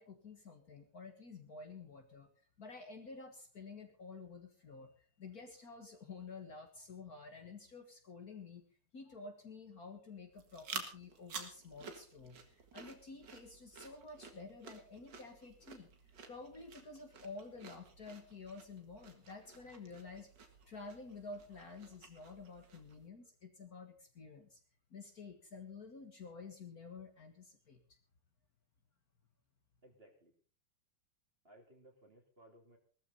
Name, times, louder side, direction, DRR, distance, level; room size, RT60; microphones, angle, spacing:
voice 1, 0.0-2.3 2.6-8.6 8.9-15.9 16.3-20.3 20.7-24.6 24.9-27.8, left 4 dB, 45° left, 5 dB, 2.0 m, -51 dB
sound 1, 10.3-23.1, right 5 dB, 55° right, 2.4 m, -52 dB
voice 2, 29.8-30.3 31.4-32.8, right 1 dB, 25° right, 3 dB, 3.0 m, -61 dB
18.5 x 13.5 x 4.0 m, 0.41 s
omnidirectional pair, 2.3 m